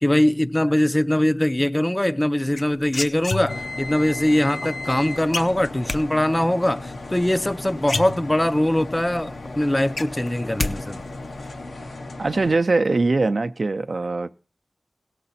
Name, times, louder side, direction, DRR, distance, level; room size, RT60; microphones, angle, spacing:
voice 1, 0.0-11.0, left 1 dB, 20° left, 0.5 m, -22 dB
sound 1, 2.5-3.9 5.3-6.0 7.4-7.5 7.8-8.7 9.1-9.2 9.5-10.7 11.0-11.5, left 3 dB, 65° left, 0.6 m, -28 dB
sound 2, 3.5-12.5, left 2 dB, 90° left, 0.9 m, -35 dB
voice 2, 12.2-14.4, right 3 dB, 65° right, 0.5 m, -22 dB
17.5 x 6.8 x 4.1 m
wide cardioid pair, 70°, 0 cm